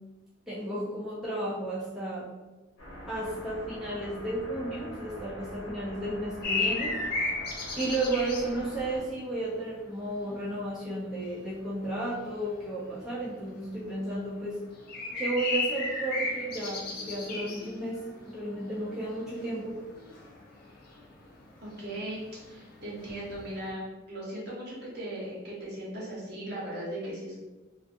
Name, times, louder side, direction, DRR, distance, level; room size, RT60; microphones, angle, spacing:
voice 1, 0.5-2.3 3.1-6.9 7.7-14.6 15.2-19.8, right 2 dB, 5° right, -8 dB, 0.5 m, -33 dB
sound 1, 2.8-9.0, equal, 70° left, 0.9 m, -44 dB
sound 2, 6.4-10.0 10.3-23.7, left 3 dB, 50° left, 0.5 m, -35 dB
voice 2, 21.6-27.4, right 1 dB, 55° right, -6 dB, 1.0 m, -38 dB
2.4 x 2.4 x 2.5 m, 1.1 s
head